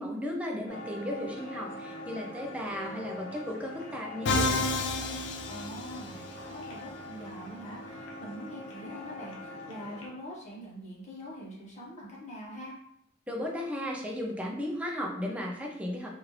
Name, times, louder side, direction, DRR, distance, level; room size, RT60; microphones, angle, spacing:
voice 1, 0.0-4.5 13.3-16.1, left 1 dB, 5° right, -1 dB, 0.5 m, -35 dB
sound 1, 0.7-10.1, left 1 dB, 80° left, 0.8 m, -43 dB
Musical instrument, 4.3-6.3, left 2 dB, 65° left, 0.4 m, -29 dB
voice 2, 5.5-12.7, equal, 40° left, -5 dB, 1.0 m, -44 dB
3.0 x 2.5 x 3.1 m, 0.73 s
head